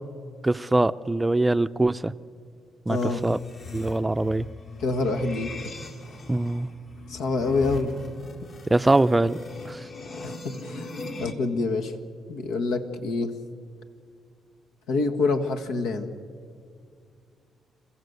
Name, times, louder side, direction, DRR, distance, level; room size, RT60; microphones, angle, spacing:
voice 1, 0.4-2.1 2.9-3.0 3.2-3.4 3.7-4.5 6.3-6.7 8.7-9.4 9.7-9.8, right 2 dB, 15° right, 13 dB, 0.5 m, -22 dB
voice 2, 2.9-3.2 4.8-5.5 7.1-7.9 10.2-10.3 10.6-10.9 11.2-12.0 12.3-13.3 14.9-16.2, left 3 dB, 90° left, 5 dB, 1.6 m, -26 dB
sound 1, 2.9-11.3, left 2 dB, 55° left, 2.4 m, -40 dB
27.5 x 14.5 x 8.1 m, 2.2 s
cardioid pair, 90°, 0 cm